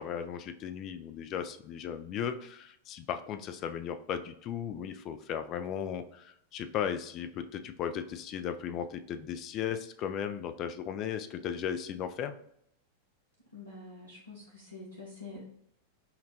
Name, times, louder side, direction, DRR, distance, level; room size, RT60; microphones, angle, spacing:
voice 1, 0.0-12.3, left 8 dB, 35° left, 9 dB, 0.3 m, -36 dB
voice 2, 13.5-15.4, left 3 dB, 85° left, -5 dB, 0.8 m, -46 dB
5.6 x 2.2 x 2.8 m, 0.71 s
figure-of-eight pair, 90°, 0 cm